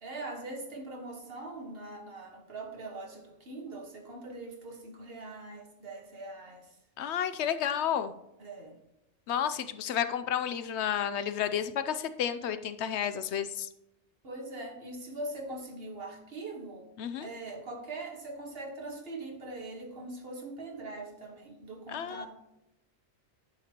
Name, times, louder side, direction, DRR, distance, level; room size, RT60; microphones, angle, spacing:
voice 1, 0.0-6.7 8.4-8.8 14.2-16.9 17.2-22.3, right 2 dB, 55° right, 2 dB, 1.7 m, -42 dB
voice 2, 7.0-8.1 9.3-13.7 17.0-17.3 21.9-22.3, left 9 dB, 75° left, 11 dB, 0.8 m, -31 dB
10.0 x 6.7 x 2.9 m, 0.87 s
omnidirectional pair, 1.2 m